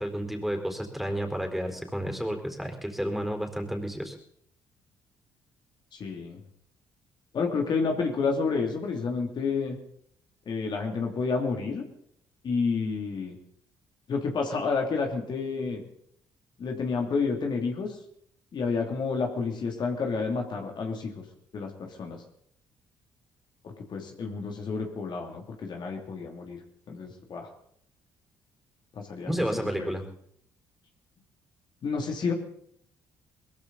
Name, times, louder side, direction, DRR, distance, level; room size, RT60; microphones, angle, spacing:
voice 1, 0.0-4.1 29.3-30.0, equal, ahead, 4 dB, 4.3 m, -31 dB
voice 2, 5.9-6.4 7.3-9.8 10.5-11.8 12.4-13.4 14.1-15.8 16.6-18.0 18.5-21.2 21.5-22.2 23.6-26.6 26.9-27.5 29.0-29.5 29.8-29.9 31.8-32.3, left 4 dB, 55° left, 2 dB, 2.9 m, -30 dB
21.0 x 14.5 x 4.1 m, 0.70 s
hypercardioid pair, 50°, 9 cm